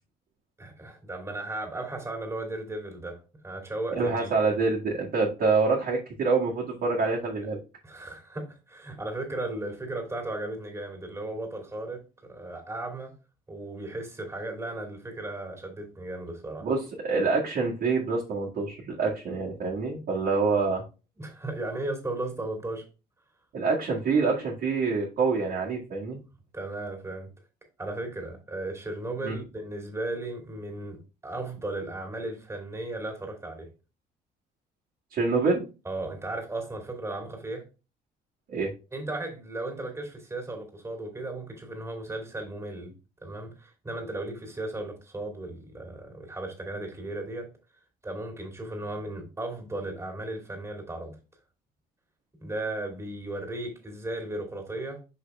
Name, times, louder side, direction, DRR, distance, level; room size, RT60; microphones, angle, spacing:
voice 1, 0.6-3.2 3.4-4.3 7.8-12.0 12.3-13.1 13.5-16.7 21.2-22.8 26.5-27.3 27.8-33.7 35.8-37.6 38.9-42.9 43.2-47.5 48.0-51.2 52.4-55.0, right 2 dB, 15° right, 2.5 m, -35 dB
voice 2, 3.9-7.6 16.6-20.8 23.5-26.2 29.2-29.4 35.1-35.6 38.5-38.7, right 4 dB, 60° right, 1.8 m, -26 dB
5.8 x 5.2 x 3.5 m
cardioid pair, 110°, 17 cm